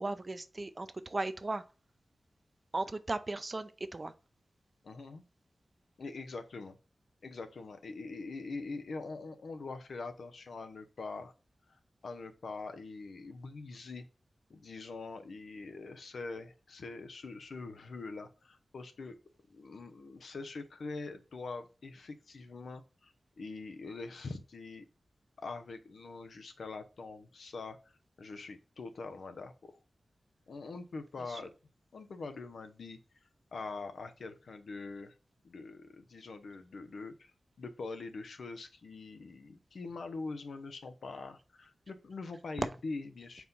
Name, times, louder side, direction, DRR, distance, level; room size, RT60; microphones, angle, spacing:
voice 1, 0.0-1.6 2.7-4.1 31.2-31.4 42.6-42.7, right 2 dB, 35° right, 0.6 m, -36 dB
voice 2, 4.8-5.2 6.0-6.8 7.2-11.3 12.0-14.0 14.5-19.2 19.5-24.9 25.4-27.8 28.2-29.7 30.5-31.5 31.9-33.0 33.5-35.1 35.4-43.5, left 3 dB, 80° left, 0.8 m, -43 dB
4.7 x 4.0 x 5.3 m
wide cardioid pair, 95°, 0 cm